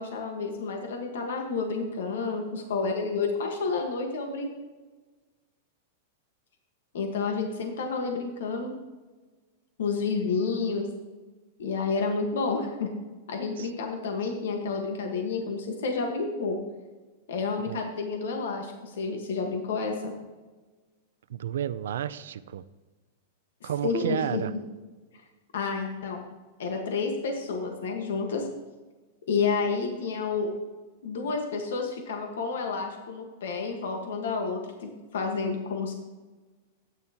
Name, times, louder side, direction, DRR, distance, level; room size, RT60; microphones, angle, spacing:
voice 1, 0.0-4.5 6.9-8.7 9.8-10.9 11.6-12.9 13.3-16.6 17.3-20.1 23.6-24.4 25.5-26.2 26.6-28.4 29.3-30.5 31.0-35.9, left 4 dB, 80° left, 3 dB, 1.5 m, -30 dB
voice 2, 21.3-22.6 23.6-24.5, right 10 dB, 80° right, 14 dB, 0.5 m, -31 dB
13.0 x 9.3 x 3.0 m, 1.3 s
supercardioid pair, 170°, 0 cm